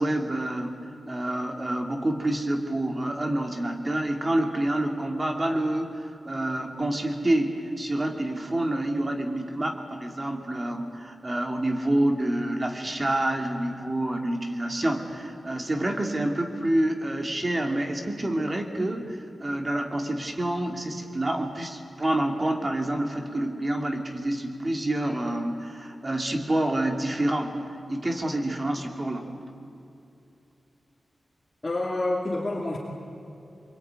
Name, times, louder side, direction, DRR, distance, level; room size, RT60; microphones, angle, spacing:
voice 1, 0.0-27.6 27.9-29.3, right 1 dB, 25° right, 4 dB, 2.5 m, -28 dB
voice 2, 31.6-32.8, left 2 dB, 20° left, -3 dB, 2.5 m, -28 dB
27.0 x 23.0 x 9.5 m, 2.8 s
wide cardioid pair, 175°, 0 cm